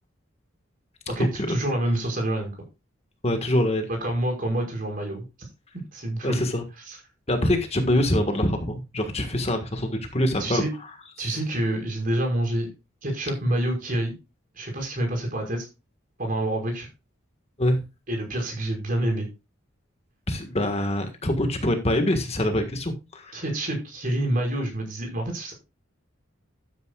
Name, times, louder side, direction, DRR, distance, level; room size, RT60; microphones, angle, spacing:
voice 1, 1.1-2.5 3.9-5.2 5.9-6.4 6.9-7.0 10.4-10.7 11.2-12.7 13.0-14.1 14.6-15.7 16.2-16.9 18.1-19.3 23.3-25.5, right 1 dB, 45° right, 2 dB, 5.4 m, -27 dB
voice 2, 3.2-3.9 6.2-6.6 7.3-10.6 17.6-17.8 20.3-23.4, left 1 dB, 30° left, 6 dB, 1.6 m, -24 dB
13.0 x 9.6 x 2.4 m, 0.27 s
head